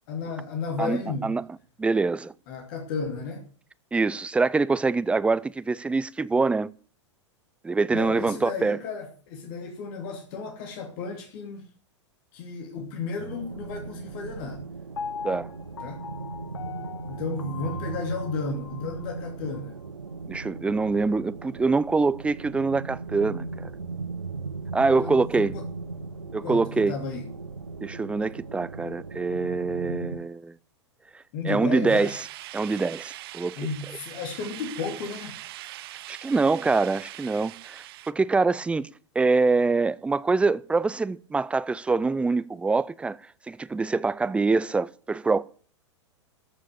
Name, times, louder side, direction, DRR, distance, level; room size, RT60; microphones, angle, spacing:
voice 1, 0.1-1.3 2.5-3.4 7.9-11.7 12.3-14.6 15.8-16.0 17.1-19.8 25.0-25.7 26.4-27.3 31.3-32.2 33.6-35.4, left 5 dB, 50° left, 2.8 m, -33 dB
voice 2, 0.8-1.4 1.8-2.3 3.9-6.7 7.6-8.8 15.2-15.5 20.3-23.7 24.7-25.5 26.3-26.9 27.8-30.5 31.4-32.2 32.5-33.6 36.1-38.9 39.2-43.2 43.5-45.4, right 3 dB, 5° right, 0.5 m, -24 dB
sound 1, 13.2-30.2, right 4 dB, 85° right, 0.8 m, -37 dB
Piano, 15.0-19.1 19.5-19.6, left 6 dB, 75° left, 1.5 m, -39 dB
sound 2, 31.9-38.1, right 16 dB, 55° right, 0.7 m, -42 dB
14.0 x 6.3 x 8.1 m
figure-of-eight pair, 100°, 15 cm